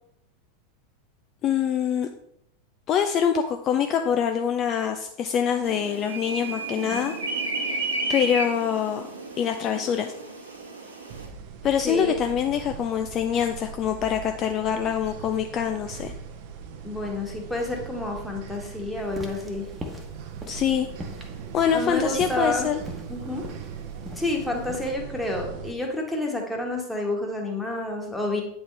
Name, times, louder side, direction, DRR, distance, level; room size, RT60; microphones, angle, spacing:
voice 1, 1.4-2.1 2.9-7.1 7.4-9.0 9.4-10.1 11.6-16.1 20.5-20.9 21.5-22.8, left 8 dB, 35° left, 6 dB, 0.4 m, -25 dB
sound 1, 5.6-11.3, right 2 dB, 70° right, 1.2 m, -32 dB
sound 2, 11.1-25.7, right 6 dB, 50° right, 0.7 m, -40 dB
voice 2, 11.8-12.2 16.8-19.7 21.7-22.7 23.1-23.4 24.1-28.4, left 2 dB, 5° left, 0 dB, 1.4 m, -29 dB
sound 3, 19.0-24.9, equal, 15° right, 1.1 m, -41 dB
8.5 x 4.3 x 3.3 m, 0.78 s
figure-of-eight pair, 85°, 0 cm